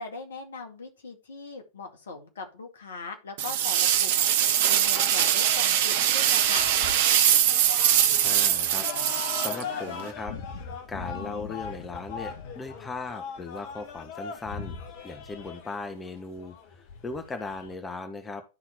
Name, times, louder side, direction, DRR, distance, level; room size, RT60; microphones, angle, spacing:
voice 1, 0.0-6.7, left 4 dB, 65° left, 4 dB, 2.1 m, -40 dB
sound 1, 3.4-10.1, right 10 dB, 50° right, 0.9 m, -22 dB
sound 2, 4.8-17.8, left 6 dB, 50° left, 1.5 m, -40 dB
voice 2, 8.2-10.3 10.9-14.8 15.0-18.4, left 3 dB, 15° left, 7 dB, 1.2 m, -38 dB
12.0 x 4.0 x 4.4 m, 0.29 s
figure-of-eight pair, 90°, 0 cm